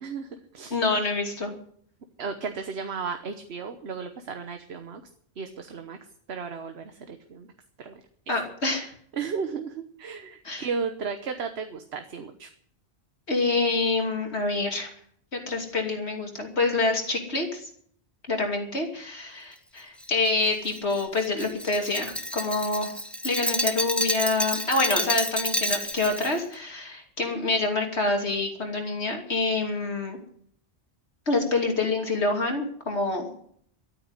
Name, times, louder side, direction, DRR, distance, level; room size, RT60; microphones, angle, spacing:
voice 1, 0.0-0.7 2.2-5.0 5.4-6.0 6.3-7.5 7.8-8.0 9.1-12.5, right 5 dB, 75° right, 7 dB, 1.3 m, -34 dB
voice 2, 0.7-1.5 8.3-8.9 10.4-10.7 13.3-14.9 15.3-17.7 18.3-23.0 23.2-30.2 31.3-33.5, left 3 dB, 85° left, 2 dB, 3.1 m, -27 dB
Glass, 20.0-26.4, equal, ahead, 1.0 m, -29 dB
13.5 x 8.9 x 9.7 m, 0.63 s
omnidirectional pair, 1.1 m